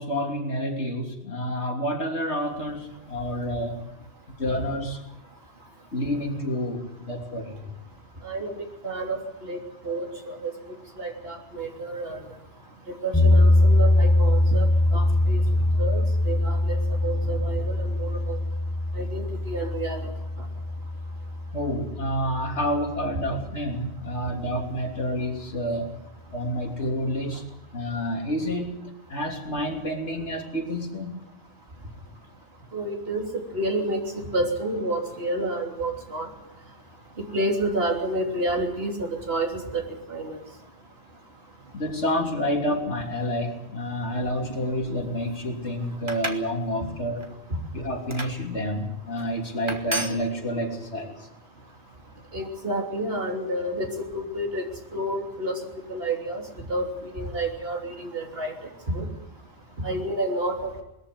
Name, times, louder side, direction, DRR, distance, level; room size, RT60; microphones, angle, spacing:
voice 1, 0.0-3.9 4.4-5.0 5.9-7.6 21.5-26.0 26.3-27.4 27.7-31.2 41.7-47.3 47.7-51.3, equal, 80° left, 2 dB, 3.4 m, -29 dB
voice 2, 8.2-8.6 8.8-9.6 9.8-10.5 11.0-12.2 13.0-15.4 15.8-18.4 19.0-20.1 32.7-33.3 33.5-36.3 37.3-39.5 39.7-39.8 40.1-40.4 52.3-54.6 54.9-55.6 55.9-56.4 56.7-58.5 58.9-59.1 59.8-60.8, right 1 dB, 60° right, 1 dB, 3.6 m, -29 dB
sound 1, 13.1-23.2, left 1 dB, 10° left, 6.6 m, -22 dB
sound 2, 46.1-46.5 47.0-47.3 48.1-48.4 49.1-49.3 49.7-50.2, right 1 dB, 25° right, 1.9 m, -32 dB
21.0 x 14.0 x 9.6 m, 0.90 s
omnidirectional pair, 1.1 m